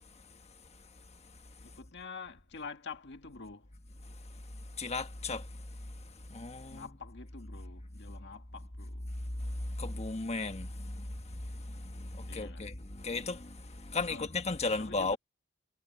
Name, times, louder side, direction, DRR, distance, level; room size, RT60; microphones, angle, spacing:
voice 1, 1.6-3.7 6.7-9.1 12.3-12.7 14.1-14.3 14.7-15.2, left 4 dB, 60° left, 1.9 m, -47 dB
voice 2, 4.8-5.5 6.3-6.8 9.8-11.1 11.5-15.2, left 3 dB, 30° left, 1.3 m, -35 dB
head